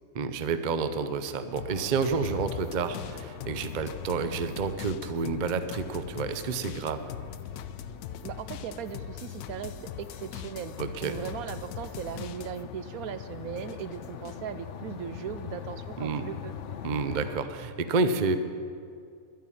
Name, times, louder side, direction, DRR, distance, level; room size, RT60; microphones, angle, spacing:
voice 1, 0.1-7.1 10.8-11.1 16.0-16.2 16.8-18.4, right 4 dB, 45° right, 10 dB, 0.6 m, -29 dB
sound 1, 1.6-12.8 13.1-14.5, left 8 dB, 85° left, 1.1 m, -42 dB
sound 2, 1.7-17.4, left 9 dB, 60° left, 0.9 m, -43 dB
voice 2, 8.2-10.7 11.0-16.5, right 8 dB, 75° right, 12 dB, 1.0 m, -38 dB
11.5 x 9.3 x 9.9 m, 2.4 s
omnidirectional pair, 1.6 m